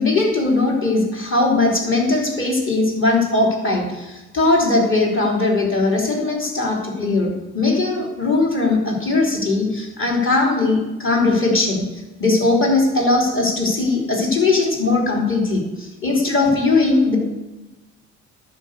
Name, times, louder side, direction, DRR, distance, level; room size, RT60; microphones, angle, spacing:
voice 1, 0.0-11.8 12.2-17.2, left 3 dB, 40° left, 0 dB, 3.4 m, -19 dB
11.0 x 5.4 x 8.1 m, 1.1 s
cardioid pair, 90°, 30 cm